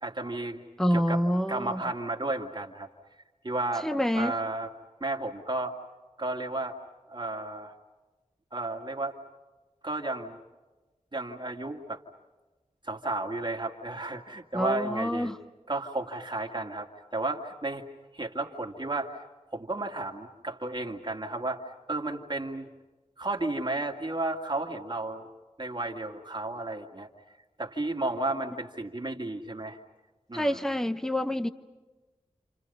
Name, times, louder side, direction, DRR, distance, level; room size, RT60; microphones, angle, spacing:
voice 1, 0.0-0.6 0.9-1.2 1.5-2.9 3.4-3.9 4.1-4.7 5.0-5.7 6.2-6.8 7.1-7.7 8.5-9.2 9.8-10.4 11.1-12.0 12.9-15.3 15.7-17.8 18.1-19.2 19.5-21.6 21.9-22.7 23.2-25.3 25.6-27.1 27.6-29.8 30.3-30.6, right 2 dB, 40° right, 2.0 m, -33 dB
voice 2, 0.8-1.8 3.8-4.3 14.5-15.4 30.3-31.5, equal, 5° left, 0.9 m, -27 dB
29.5 x 28.0 x 5.5 m
wide cardioid pair, 85°, 13 cm